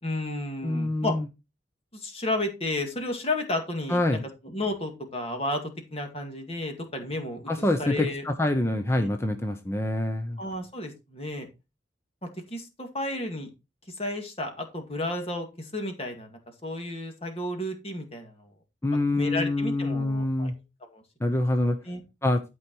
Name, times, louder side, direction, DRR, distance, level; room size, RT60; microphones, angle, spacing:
voice 1, 0.0-1.2 1.9-5.6 5.9-8.3 9.0-9.1 10.4-11.5 12.2-13.5 14.0-18.5 19.1-20.5 20.9-21.3 21.9-22.0, left 1 dB, 30° left, 4 dB, 2.1 m, -32 dB
voice 2, 0.6-1.2 3.9-4.2 7.5-10.4 18.8-20.5 21.2-21.8 22.2-22.4, left 1 dB, 15° left, 6 dB, 0.8 m, -26 dB
12.0 x 4.7 x 4.5 m, 0.27 s
head